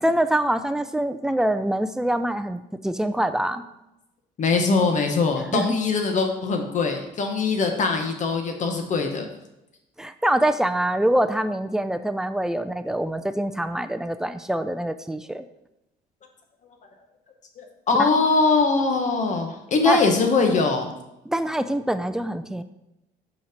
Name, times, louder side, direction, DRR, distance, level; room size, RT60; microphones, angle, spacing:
voice 1, 0.0-3.6 5.5-5.8 10.0-15.5 18.0-18.1 19.9-20.0 21.3-22.6, right 1 dB, 5° right, 10 dB, 0.4 m, -24 dB
voice 2, 4.4-9.3 17.6-20.9, left 4 dB, 45° left, 4 dB, 1.4 m, -22 dB
5.6 x 5.5 x 5.2 m, 0.89 s
cardioid pair, 110°, 17 cm